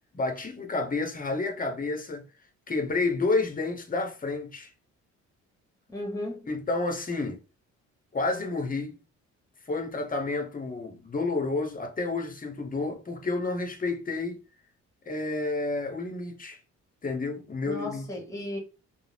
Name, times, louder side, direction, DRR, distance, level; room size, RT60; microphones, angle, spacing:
voice 1, 0.1-2.3 2.7-4.7 6.5-7.4 8.1-9.0 9.7-14.4 15.1-16.6 17.0-18.1, left 3 dB, 30° left, 0.7 m, -30 dB
voice 2, 5.9-6.5 17.6-18.6, left 1 dB, 10° left, 1.1 m, -35 dB
2.4 x 2.0 x 3.2 m
cardioid pair, 90°, 30 cm